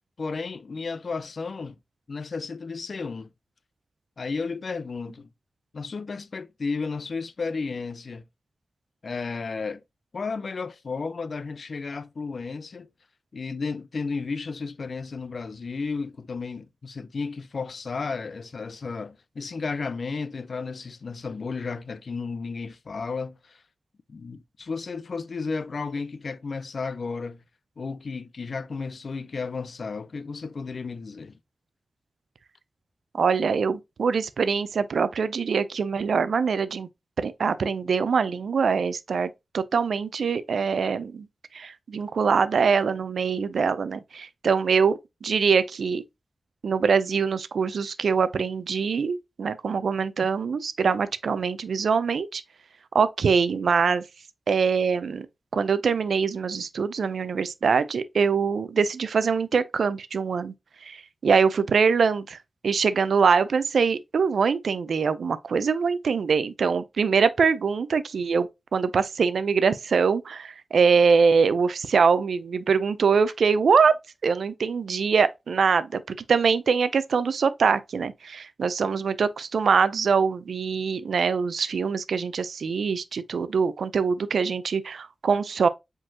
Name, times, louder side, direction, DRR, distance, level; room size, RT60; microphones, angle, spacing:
voice 1, 0.2-1.8 2.1-3.3 4.2-5.3 5.7-8.2 9.0-9.8 10.1-12.9 13.3-23.6 24.1-27.4 27.8-31.4, left 4 dB, 60° left, 0.4 m, -33 dB
voice 2, 33.1-36.9 37.2-41.3 41.5-46.0 46.6-52.4 52.9-54.0 54.5-55.3 55.5-60.5 60.8-62.4 62.6-74.0 74.2-85.7, right 5 dB, 85° right, 0.4 m, -23 dB
5.0 x 3.8 x 2.7 m
wide cardioid pair, 115°, 0 cm